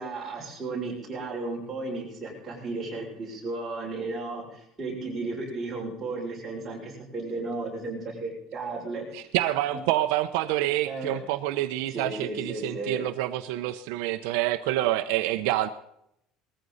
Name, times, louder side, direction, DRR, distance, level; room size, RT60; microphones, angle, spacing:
voice 1, 0.0-9.2 9.7-9.8 10.8-11.2 11.9-13.0, right 3 dB, 15° right, -4 dB, 6.9 m, -34 dB
voice 2, 9.1-15.7, right 14 dB, 80° right, 9 dB, 0.9 m, -27 dB
19.5 x 14.5 x 4.2 m, 0.77 s
cardioid pair, 175°, 0 cm